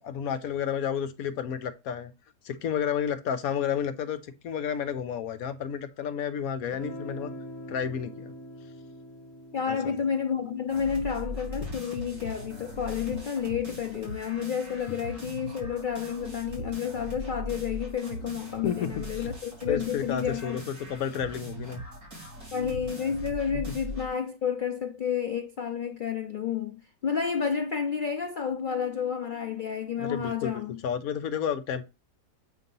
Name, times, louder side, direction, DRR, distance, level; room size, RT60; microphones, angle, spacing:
voice 1, 0.0-2.1 2.4-7.3 7.7-8.3 9.7-9.9 18.6-19.3 19.7-20.6 20.9-21.8 30.0-31.9, left 8 dB, 70° left, 1.1 m, -31 dB
Guitar, 6.6-12.4, equal, 45° left, 1.2 m, -44 dB
voice 2, 9.5-20.6 22.5-30.8, left 7 dB, 90° left, 0.4 m, -30 dB
sound 1, 10.7-24.2, equal, 70° right, 3.9 m, -40 dB
8.0 x 2.8 x 5.3 m
omnidirectional pair, 1.7 m